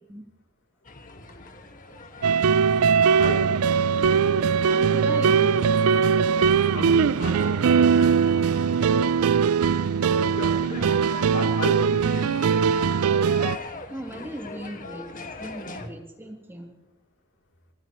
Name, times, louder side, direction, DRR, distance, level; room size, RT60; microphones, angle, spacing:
sound 1, 0.8-15.9, left 3 dB, 40° left, 1.8 m, -42 dB
sound 2, 2.2-13.6, right 6 dB, 85° right, 0.4 m, -21 dB
voice 1, 3.2-3.7 6.7-9.1 10.2-12.6, left 2 dB, 60° left, 2 dB, 3.3 m, -35 dB
voice 2, 4.7-5.7 13.9-15.1 15.4-16.7, right 1 dB, 10° right, 1 dB, 2.8 m, -37 dB
26.5 x 14.5 x 3.1 m, 0.90 s
head